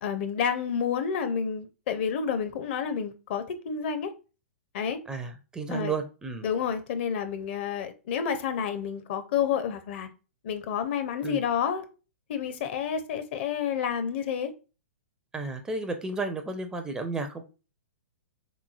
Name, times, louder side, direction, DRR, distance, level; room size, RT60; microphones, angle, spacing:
voice 1, 0.0-4.1 4.7-5.0 5.7-5.9 6.4-10.1 10.4-11.8 12.3-14.5, left 7 dB, 50° left, 0.5 m, -29 dB
voice 2, 5.1-6.5 11.2-11.4 15.3-17.4, right 3 dB, 10° right, 0.4 m, -33 dB
3.5 x 3.0 x 2.3 m
figure-of-eight pair, 115°, 7 cm